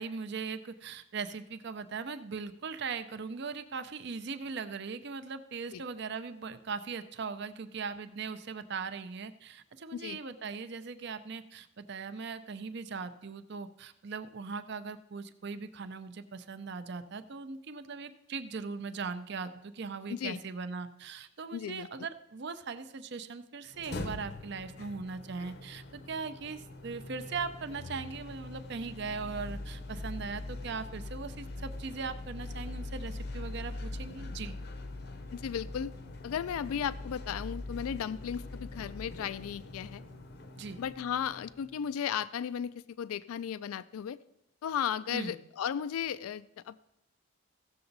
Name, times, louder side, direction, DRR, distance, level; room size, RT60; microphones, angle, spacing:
voice 1, 0.0-34.5 40.5-40.8 45.1-45.4, right 5 dB, 50° right, 11 dB, 0.5 m, -39 dB
voice 2, 20.1-20.4 21.5-21.9 35.3-35.9 36.2-40.0 40.8-44.2 44.6-46.8, left 8 dB, 80° left, 16 dB, 0.3 m, -35 dB
sound 1, 23.7-41.8, left 2 dB, 50° left, 0.7 m, -42 dB
16.0 x 6.8 x 4.0 m, 0.83 s
head